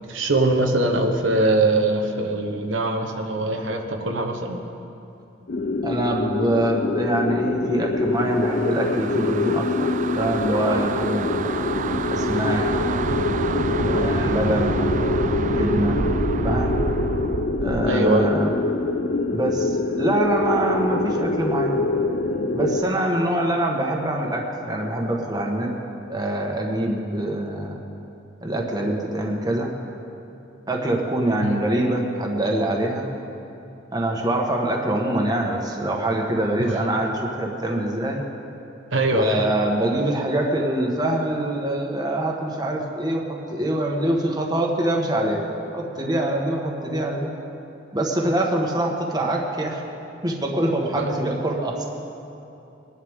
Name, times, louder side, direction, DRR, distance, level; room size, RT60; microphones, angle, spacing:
voice 1, 0.1-4.6 14.0-14.2 17.8-18.3 31.4-31.6 36.6-36.8 38.9-39.5 50.9-51.1, right 2 dB, 75° right, 2 dB, 1.1 m, -22 dB
sound 1, 5.5-22.8, left 3 dB, 50° left, 0.6 m, -25 dB
voice 2, 5.8-9.9 10.2-11.3 12.1-12.7 13.8-14.8 15.4-16.0 16.4-16.8 17.6-18.5 19.3-21.8 22.5-25.7 26.1-27.8 28.4-29.7 30.7-33.1 33.9-38.2 39.1-45.5 45.7-47.3 47.9-49.8 50.2-51.9, right 1 dB, 20° right, 0 dB, 1.4 m, -24 dB
sound 2, 8.2-18.0, right 5 dB, 40° right, 0.3 m, -28 dB
22.5 x 11.5 x 3.7 m, 2.8 s
head